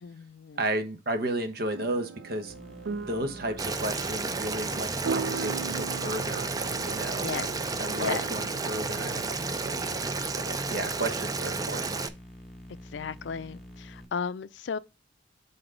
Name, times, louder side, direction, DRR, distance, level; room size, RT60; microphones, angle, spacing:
voice 1, 0.0-0.6 7.2-7.5 8.0-8.3 10.7-10.9 12.9-14.8, left 6 dB, 70° left, 0.4 m, -35 dB
voice 2, 0.6-2.5 3.1-7.3 7.8-12.0, right 1 dB, 55° right, 1.0 m, -33 dB
sound 1, 1.7-11.4, right 5 dB, 85° right, 0.4 m, -40 dB
sound 2, 2.5-14.1, left 1 dB, ahead, 1.2 m, -47 dB
Boiling, 3.6-12.1, right 3 dB, 20° right, 0.4 m, -32 dB
5.9 x 4.0 x 5.0 m
head